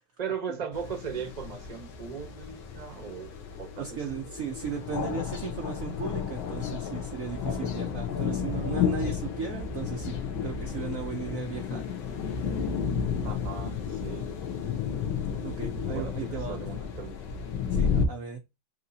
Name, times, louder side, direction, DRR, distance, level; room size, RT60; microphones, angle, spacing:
voice 1, 0.2-4.5 13.2-14.3 15.8-17.1 17.9-18.1, right 6 dB, 40° right, 0.6 m, -38 dB
sound 1, 0.7-18.1, left 6 dB, 75° left, 1.6 m, -32 dB
voice 2, 3.8-11.8 15.4-16.6 17.7-18.4, right 7 dB, 80° right, 0.7 m, -36 dB
6.2 x 2.8 x 2.7 m
omnidirectional pair, 2.2 m